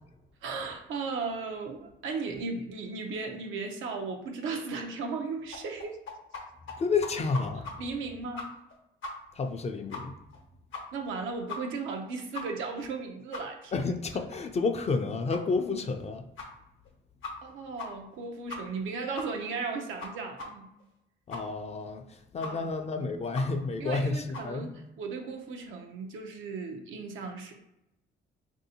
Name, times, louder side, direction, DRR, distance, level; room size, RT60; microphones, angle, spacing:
voice 1, 0.4-6.0 7.8-8.6 10.9-13.9 17.4-20.7 22.4-22.7 23.8-27.5, right 4 dB, 85° right, 0.6 m, -36 dB
sound 1, 5.5-6.4 6.7-6.8 7.0-7.7 8.0-8.1 8.4-8.7 9.0-9.1 9.4-9.5 9.9-10.0 10.3-10.4 10.7-11.1 11.5-11.6 11.9-12.0 12.3-12.4 12.8-12.9 13.3-13.4 13.8-13.9 14.3-14.4 14.8-14.9 15.3-15.4 15.9-16.0 16.4-16.5 16.9-17.0 17.2-17.5 17.8-17.9 18.1-18.2 18.5-18.8 19.2-19.3 19.6-19.7 20.0-20.1 20.4-20.5 20.8-20.9 21.3-21.4 21.8-21.9 22.4-22.5 22.8-22.9 23.3-23.4 23.8-23.9 24.3-24.5, left 4 dB, 75° left, 0.8 m, -39 dB
voice 2, 6.8-7.7 9.4-10.1 13.7-16.2 21.3-24.7, left 4 dB, 35° left, 0.4 m, -30 dB
3.4 x 2.7 x 2.7 m
cardioid pair, 90°, 20 cm